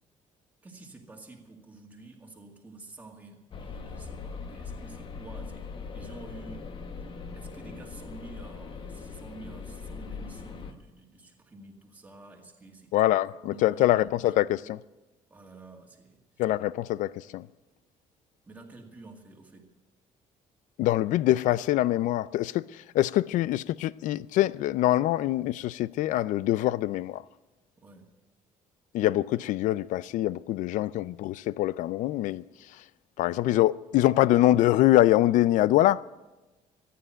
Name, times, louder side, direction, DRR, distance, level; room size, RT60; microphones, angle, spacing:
voice 1, 0.6-5.7 5.9-6.7 7.3-13.0 13.5-14.2 14.5-14.6 15.3-16.2 18.5-19.7 27.8-28.1, right 3 dB, 10° right, 2.1 m, -49 dB
sound 1, 3.5-10.7, left 5 dB, 40° left, 1.3 m, -40 dB
voice 2, 12.9-14.8 16.4-17.5 20.8-27.2 28.9-32.4 33.2-36.0, left 14 dB, 75° left, 0.5 m, -24 dB
15.0 x 10.5 x 9.0 m
cardioid pair, 160°, 13 cm